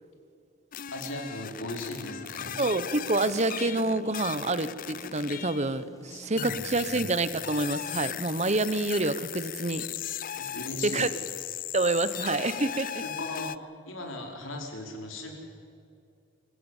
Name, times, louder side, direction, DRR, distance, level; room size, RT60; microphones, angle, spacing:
sound 1, 0.7-5.8 6.4-13.6, left 11 dB, 45° left, 0.5 m, -37 dB
voice 1, 0.9-2.6 6.1-6.6 6.9-7.1 10.3-11.3 12.9-15.3, left 1 dB, 85° left, 2 dB, 4.8 m, -38 dB
voice 2, 2.6-9.9 10.8-11.1 11.7-13.0, right 2 dB, 35° right, 14 dB, 1.0 m, -27 dB
sound 2, 2.9-8.8, equal, 15° left, 1.6 m, -51 dB
26.0 x 16.0 x 8.3 m, 2.5 s
head